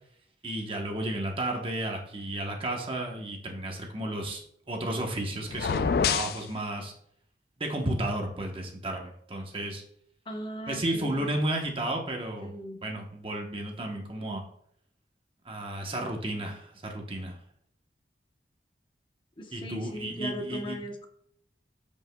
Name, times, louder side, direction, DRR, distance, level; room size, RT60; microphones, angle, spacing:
voice 1, 0.4-4.4 4.7-6.9 7.6-9.8 10.7-12.5 12.8-14.4 15.4-17.4 19.5-20.8, right 1 dB, 30° right, 1 dB, 1.0 m, -33 dB
sound 1, 5.5-6.4, left 6 dB, 60° left, 0.3 m, -26 dB
voice 2, 10.3-11.3 12.4-12.8 19.4-21.1, left 1 dB, 30° left, 4 dB, 0.8 m, -38 dB
13.0 x 5.3 x 2.2 m, 0.69 s
head